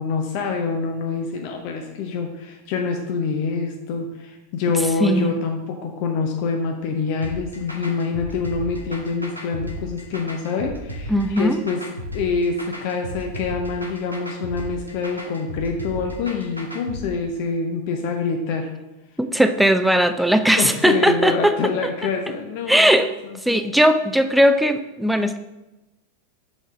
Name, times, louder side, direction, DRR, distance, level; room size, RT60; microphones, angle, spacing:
voice 1, 0.0-11.8 12.1-18.7 20.6-23.0 23.5-23.6, left 4 dB, 45° left, 3 dB, 0.6 m, -26 dB
voice 2, 5.0-5.4 11.1-11.6 19.2-21.5 22.7-23.1 23.4-25.4, equal, ahead, 9 dB, 0.4 m, -18 dB
sound 1, 7.2-17.0, equal, 85° right, 0.9 m, -34 dB
6.1 x 3.9 x 4.9 m, 1.0 s
figure-of-eight pair, 90°, 0 cm